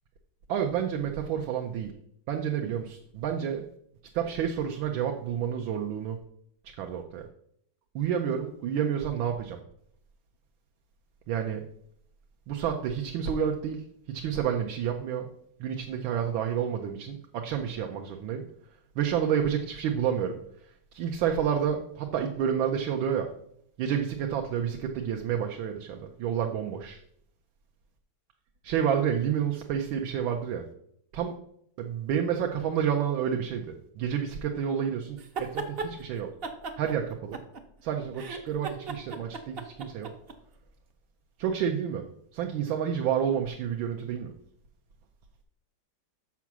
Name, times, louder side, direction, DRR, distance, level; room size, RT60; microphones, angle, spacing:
voice 1, 0.5-1.9 2.3-3.7 4.1-6.2 6.8-7.2 7.9-9.6 11.3-11.6 12.5-15.3 15.6-18.4 19.0-20.4 20.9-23.3 23.8-27.0 28.6-30.7 31.1-31.3 31.8-36.3 36.8-37.4 37.8-40.1 41.4-42.1 42.3-44.3, right 8 dB, 80° right, 3 dB, 1.6 m, -29 dB
sound 1, 35.2-35.9 36.4-37.8 38.1-40.3, right 4 dB, 55° right, 0.6 m, -36 dB
6.9 x 5.9 x 6.1 m, 0.70 s
omnidirectional pair, 2.1 m